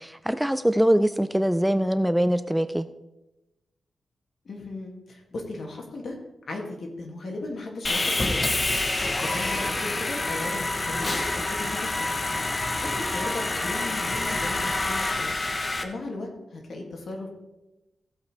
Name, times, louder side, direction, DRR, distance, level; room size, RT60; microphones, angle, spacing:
voice 1, 0.0-2.9, equal, 5° right, 11 dB, 0.3 m, -23 dB
voice 2, 4.4-6.2 6.5-8.7 9.2-12.2 12.8-15.3 15.8-17.3, left 2 dB, 60° left, 1 dB, 2.3 m, -36 dB
Sawing, 7.8-15.8, left 2 dB, 25° left, 0.9 m, -27 dB
15.5 x 8.2 x 3.3 m, 1.0 s
wide cardioid pair, 140°, 0 cm